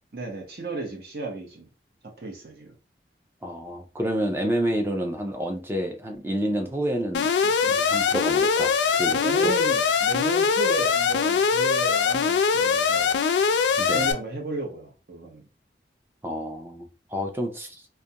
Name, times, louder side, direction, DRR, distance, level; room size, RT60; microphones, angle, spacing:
voice 1, 0.1-1.7 2.2-2.7 9.1-13.2 13.9-15.4, right 3 dB, 60° right, 0.8 m, -34 dB
voice 2, 3.4-8.7 9.0-9.2 9.4-9.5 13.8-14.1 16.2-17.9, equal, 15° right, 0.4 m, -29 dB
Alarm, 7.1-14.1, left 6 dB, 85° left, 0.3 m, -22 dB
2.3 x 2.2 x 2.7 m
head